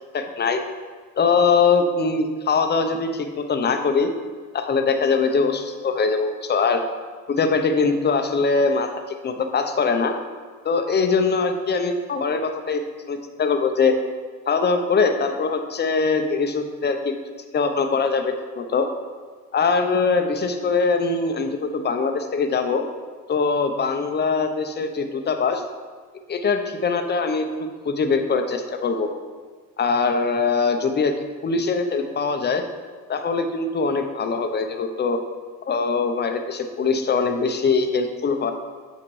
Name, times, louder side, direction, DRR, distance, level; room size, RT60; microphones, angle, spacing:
voice 1, 0.1-0.6 1.2-4.1 4.5-6.8 7.3-8.9 9.2-10.1 10.6-12.8 13.1-14.0 14.5-17.1 17.5-18.9 19.5-22.8 23.3-25.6 26.3-27.5 27.8-29.1 29.8-31.1 31.4-32.6 33.1-35.2 35.7-38.5, left 4 dB, 35° left, 6 dB, 0.8 m, -22 dB
8.7 x 5.8 x 3.2 m, 1.5 s
cardioid pair, 100°, 31 cm